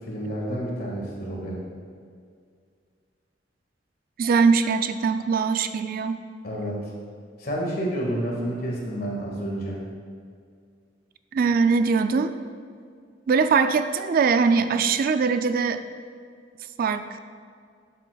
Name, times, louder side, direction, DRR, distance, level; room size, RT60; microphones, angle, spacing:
voice 1, 0.0-1.6 6.4-6.8 7.4-9.8, right 1 dB, 55° left, -2 dB, 1.8 m, -29 dB
voice 2, 4.2-6.2 11.3-12.4 13.3-15.8 16.8-17.2, right 5 dB, 50° right, 10 dB, 0.3 m, -22 dB
11.5 x 7.4 x 2.3 m, 2.1 s
head